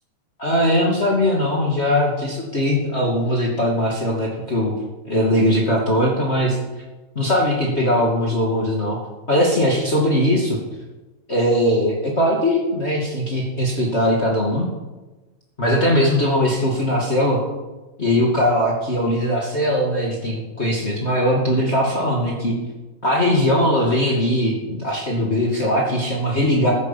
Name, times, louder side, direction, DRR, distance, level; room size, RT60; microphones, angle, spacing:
voice 1, 0.4-4.7 5.0-6.6 7.1-9.0 9.3-10.6 11.3-14.7 15.6-17.4 18.0-22.5 23.0-26.7, equal, 40° left, -4 dB, 0.9 m, -20 dB
15.0 x 11.5 x 7.3 m, 1.1 s
omnidirectional pair, 5.6 m